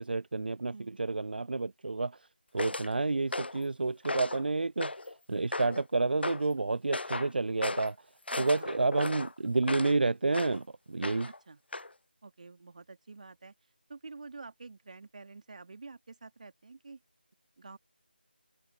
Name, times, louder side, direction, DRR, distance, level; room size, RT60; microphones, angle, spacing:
voice 1, 0.0-2.2 2.5-5.0 5.3-8.0 8.4-11.3, right 3 dB, 65° right, 0.4 m, -30 dB
sound 1, 2.6-2.9 3.3-3.6 4.0-4.4 4.8-5.1 5.5-5.8 6.2-6.5 6.9-7.3 7.6-7.9 8.3-10.0 10.3-10.6 11.0-11.4 11.7-11.9, left 2 dB, 80° left, 0.5 m, -36 dB
voice 2, 8.3-8.7 11.3-11.6 12.2-13.5 13.9-17.0 17.6-17.8, right 4 dB, 45° right, 2.2 m, -48 dB
figure-of-eight pair, 165°, 6 cm